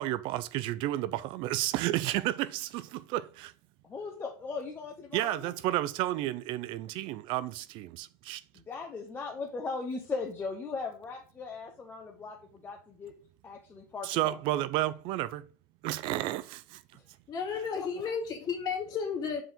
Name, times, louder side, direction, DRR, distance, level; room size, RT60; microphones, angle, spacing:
voice 1, 0.0-3.3 5.1-8.4 14.0-15.5 15.8-16.8, right 15 dB, 55° right, 0.4 m, -31 dB
voice 2, 3.9-5.5 8.5-13.1 13.4-14.4 16.9-17.0 17.8-17.9, left 4 dB, 20° left, 0.8 m, -38 dB
voice 3, 17.3-19.4, left 6 dB, 40° left, 2.3 m, -33 dB
5.6 x 4.9 x 5.1 m
cardioid pair, 150°, 10 cm